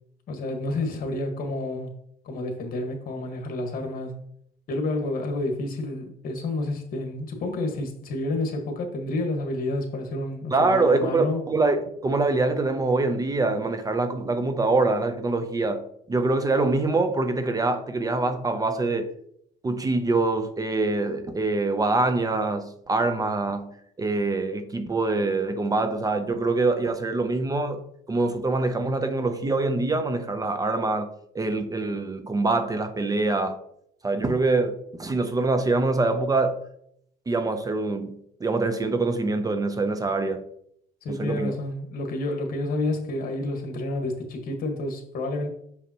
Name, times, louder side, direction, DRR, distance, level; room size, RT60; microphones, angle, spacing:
voice 1, 0.3-1.9 2.2-4.1 4.7-11.4 41.0-45.5, left 2 dB, 60° left, 1.5 m, -29 dB
voice 2, 10.5-19.1 19.6-31.1 31.3-33.6 34.0-36.6 37.3-40.4 41.1-41.5, right 3 dB, 20° right, 0.6 m, -24 dB
6.4 x 5.1 x 2.9 m
cardioid pair, 110°, 17 cm